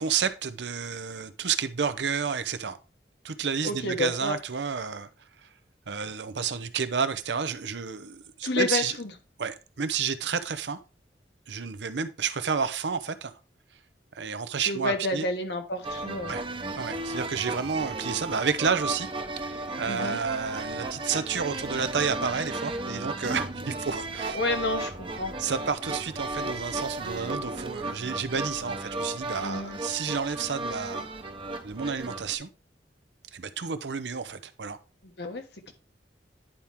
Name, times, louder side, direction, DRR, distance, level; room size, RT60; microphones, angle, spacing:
voice 1, 0.0-2.8 3.2-5.1 5.9-9.0 9.4-10.8 11.5-13.3 14.1-15.3 16.3-16.4 16.8-19.1 19.4-24.4 25.4-31.1 31.6-32.5 33.3-34.8, right 6 dB, 85° right, 0.7 m, -30 dB
voice 2, 3.6-4.4 8.4-9.1 14.6-16.4 19.8-20.2 24.3-25.3 29.4-29.8 35.0-35.7, left 2 dB, 70° left, 1.3 m, -30 dB
sound 1, 15.8-32.4, right 2 dB, 30° right, 0.8 m, -34 dB
10.0 x 4.4 x 3.5 m
head